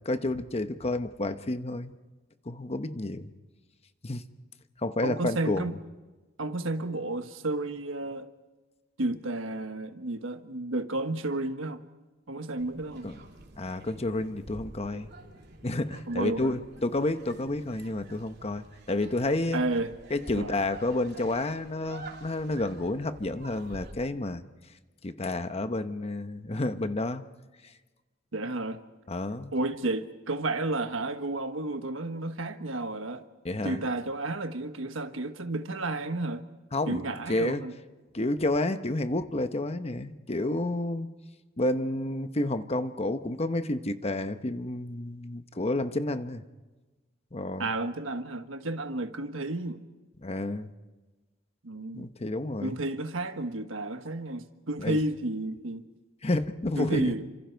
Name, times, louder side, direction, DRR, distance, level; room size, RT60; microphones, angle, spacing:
voice 1, 0.0-1.9 2.5-3.3 4.0-4.2 4.8-5.7 13.0-13.2 13.6-15.1 15.6-19.6 20.1-24.4 25.0-27.2 29.1-29.5 33.4-33.8 36.7-37.0 37.3-37.6 38.1-41.1 41.6-46.4 47.3-47.7 50.2-50.7 51.9-52.8 54.8-55.0 56.2-57.1, left 2 dB, 30° left, 1.0 m, -30 dB
voice 2, 5.0-5.8 6.4-8.3 9.0-11.8 12.3-13.1 16.1-16.6 19.5-19.9 20.4-20.6 28.3-28.8 29.5-33.2 33.6-36.4 36.9-37.7 47.6-49.8 51.6-52.1 52.6-55.8 56.8-57.3, right 2 dB, 85° right, 1.3 m, -32 dB
sound 1, 12.6-23.9, right 2 dB, 60° right, 3.1 m, -48 dB
29.5 x 26.0 x 4.6 m
head